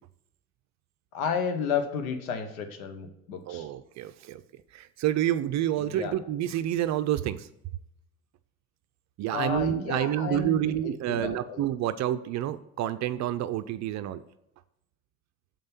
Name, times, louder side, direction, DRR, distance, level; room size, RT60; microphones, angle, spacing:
voice 1, 1.1-3.7 5.8-6.1 9.3-11.6, left 6 dB, 75° left, 7 dB, 1.0 m, -32 dB
voice 2, 3.5-4.4 4.7-7.5 9.2-14.2, right 12 dB, 40° right, 12 dB, 0.5 m, -28 dB
7.3 x 5.3 x 5.9 m, 0.78 s
hypercardioid pair, 60°, 42 cm